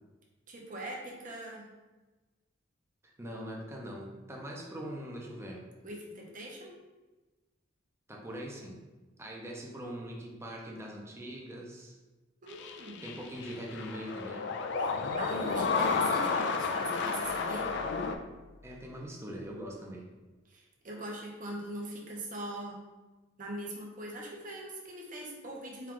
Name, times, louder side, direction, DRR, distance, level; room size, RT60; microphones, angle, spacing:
voice 1, 0.5-1.7 5.8-6.7 12.4-13.1 14.8-17.7 20.5-22.8 23.4-25.9, right 1 dB, 45° right, -2 dB, 0.9 m, -42 dB
voice 2, 3.0-5.6 8.1-8.8 9.2-12.0 13.0-14.5 18.6-20.1, equal, 15° right, -2 dB, 0.6 m, -42 dB
sound 1, 12.5-18.2, left 4 dB, 60° left, 0.4 m, -31 dB
sound 2, 17.1-19.9, left 2 dB, 75° right, 0.9 m, -56 dB
4.5 x 2.4 x 3.7 m, 1.2 s
head